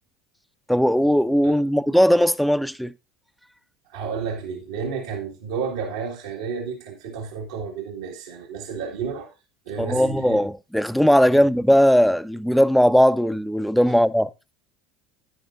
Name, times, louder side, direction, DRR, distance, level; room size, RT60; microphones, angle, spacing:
voice 1, 0.7-2.9 9.8-14.3, equal, ahead, 0.5 m, -18 dB
voice 2, 3.9-9.3 9.7-10.4 11.3-11.5 13.9-14.0, right 6 dB, 80° right, 1.8 m, -31 dB
10.5 x 10.0 x 2.5 m
hypercardioid pair, 85°, 3 cm